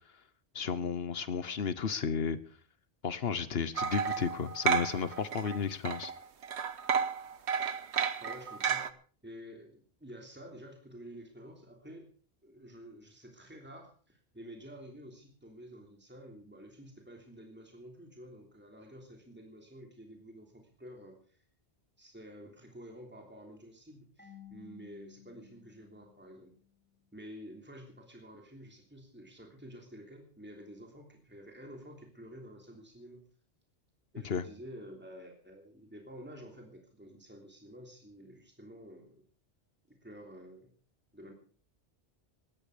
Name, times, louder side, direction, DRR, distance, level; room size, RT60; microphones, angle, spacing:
voice 1, 0.5-2.4 3.0-6.1 34.2-34.4, left 6 dB, 70° left, 15 dB, 1.2 m, -33 dB
sound 1, 3.8-5.6 5.8-8.9, right 7 dB, 85° right, 1.3 m, -32 dB
voice 2, 8.2-8.9 9.2-12.1 12.4-21.4 22.0-26.5 27.1-33.2 34.1-39.2 39.9-40.7 41.1-41.3, equal, 10° right, 2 dB, 3.2 m, -50 dB
Marimba xylophone / Wood, 24.2-26.9, left 10 dB, 10° left, 3.8 m, -56 dB
18.0 x 14.0 x 5.0 m, 0.42 s
omnidirectional pair, 1.1 m